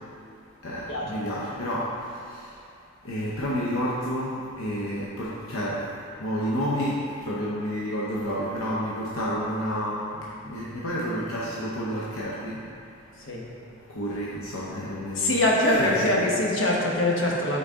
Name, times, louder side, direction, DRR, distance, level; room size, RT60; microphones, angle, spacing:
voice 1, 0.6-1.9 2.3-2.4 3.0-5.8 6.2-12.6 13.9-15.4 15.7-16.3 17.2-17.3, equal, 80° left, -6 dB, 0.8 m, -30 dB
voice 2, 15.2-17.6, left 1 dB, 60° left, -3 dB, 1.1 m, -23 dB
9.1 x 4.0 x 3.7 m, 2.4 s
head